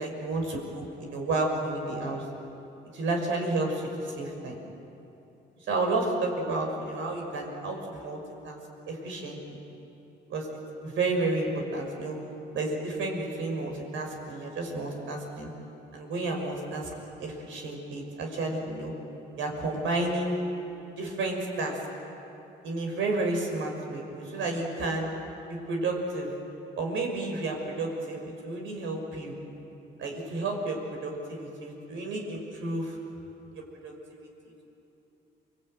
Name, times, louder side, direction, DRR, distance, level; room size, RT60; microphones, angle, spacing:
voice 1, 0.0-2.2 2.9-4.6 5.7-8.2 8.4-8.6 8.9-9.6 10.3-12.2 12.5-15.5 15.9-18.9 19.4-20.4 21.0-21.8 22.6-25.1 25.5-26.3 26.8-29.3 30.0-33.0 33.5-34.6, right 2 dB, 80° right, 1 dB, 6.0 m, -31 dB
29.0 x 21.5 x 9.1 m, 2.9 s
cardioid pair, 90°, 20 cm